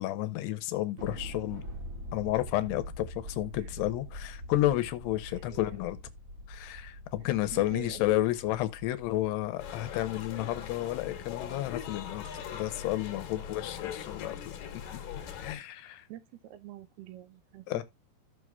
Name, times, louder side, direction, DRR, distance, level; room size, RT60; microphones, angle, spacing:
voice 1, 0.0-1.6 2.1-6.0 6.5-14.6 14.9-15.0 15.4-16.1 17.7-17.8, left 15 dB, 80° left, 2.8 m, -31 dB
Thunder, 1.0-11.6, equal, 45° right, 2.4 m, -44 dB
voice 2, 5.3-5.8 7.5-8.0 13.4-13.7 15.6-15.7 16.1-17.8, right 13 dB, 80° right, 2.4 m, -47 dB
sound 1, 9.6-15.6, left 8 dB, 65° left, 2.8 m, -41 dB
14.5 x 6.3 x 2.2 m
omnidirectional pair, 4.8 m